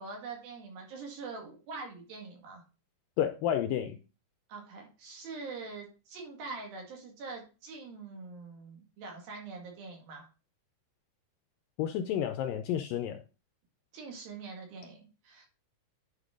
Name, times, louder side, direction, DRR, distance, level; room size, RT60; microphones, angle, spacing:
voice 1, 0.0-2.6 4.5-10.3 13.9-15.5, right 4 dB, 70° right, 3.8 m, -44 dB
voice 2, 3.2-4.0 11.8-13.2, left 10 dB, 80° left, 2.0 m, -30 dB
9.7 x 5.1 x 3.8 m
omnidirectional pair, 4.5 m